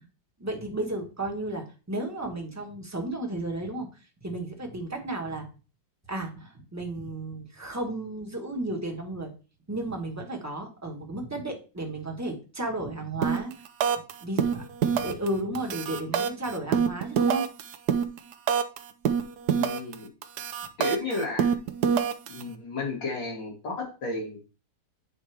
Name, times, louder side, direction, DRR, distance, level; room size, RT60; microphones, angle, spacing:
voice 1, 0.4-3.9 4.2-5.5 6.1-9.3 9.7-13.5 14.2-17.5, right 2 dB, 10° right, 1 dB, 1.1 m, -33 dB
sound 1, 13.2-13.5 13.8-14.1 14.4-15.3 15.5-18.8 19.0-19.9 20.2-22.4, right 7 dB, 70° right, 1.2 m, -25 dB
voice 2, 19.5-20.1 20.8-21.5 22.3-24.6, left 2 dB, 85° left, -1 dB, 3.0 m, -33 dB
8.5 x 4.4 x 3.4 m, 0.34 s
omnidirectional pair, 1.9 m